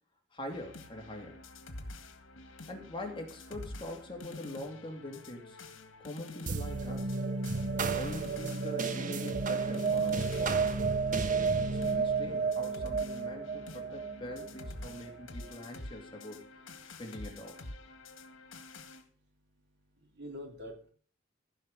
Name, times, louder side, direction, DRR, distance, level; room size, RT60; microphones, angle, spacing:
voice 1, 0.3-1.4 2.7-5.6 6.0-7.2 7.9-10.7 11.6-16.5 17.0-17.6, left 1 dB, 25° left, 1 dB, 2.7 m, -44 dB
sound 1, 0.5-19.0, left 2 dB, 80° left, 1.8 m, -48 dB
sound 2, 6.5-15.2, right 4 dB, 45° right, 1.1 m, -32 dB
voice 2, 18.1-18.5 19.2-19.3 19.6-20.9, equal, 60° right, 2 dB, 3.8 m, -49 dB
15.5 x 5.8 x 7.1 m, 0.43 s
head